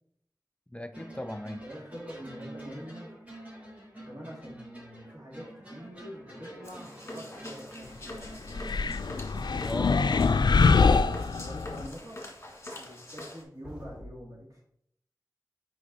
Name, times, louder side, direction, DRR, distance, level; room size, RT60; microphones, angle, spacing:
voice 1, 0.7-1.6 9.6-10.2, left 1 dB, 15° left, 0.4 m, -37 dB
sound 1, 0.9-9.7 13.6-14.0, right 1 dB, 20° right, 2.8 m, -47 dB
voice 2, 1.6-3.1 4.0-8.0 8.4-9.0 10.2-12.2 12.8-14.6, equal, 50° right, 2.6 m, -45 dB
sound 2, 6.6-13.4, left 1 dB, 35° left, 1.8 m, -45 dB
sound 3, 8.5-11.9, left 4 dB, 85° left, 0.3 m, -24 dB
6.1 x 5.1 x 4.0 m
wide cardioid pair, 65°, 7 cm